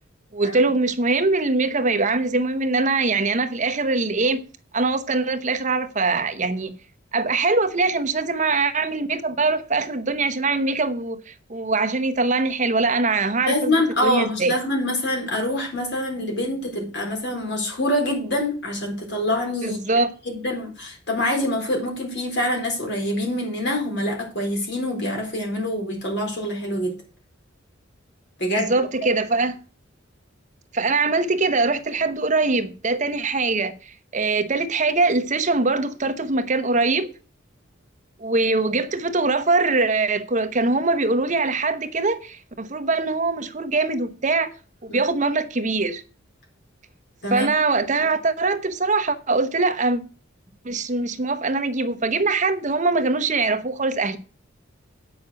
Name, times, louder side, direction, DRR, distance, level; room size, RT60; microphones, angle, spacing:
voice 1, 0.3-4.4 4.7-6.8 7.1-13.7 14.0-14.5 19.6-20.1 28.6-29.6 30.7-37.1 38.2-44.5 44.8-46.0 47.3-50.0 50.6-54.2, right 3 dB, 40° right, 0.9 m, -22 dB
voice 2, 13.4-27.0 28.4-28.7 44.9-45.0 47.2-47.5, left 1 dB, 60° left, 4.1 m, -25 dB
8.7 x 6.1 x 6.2 m
head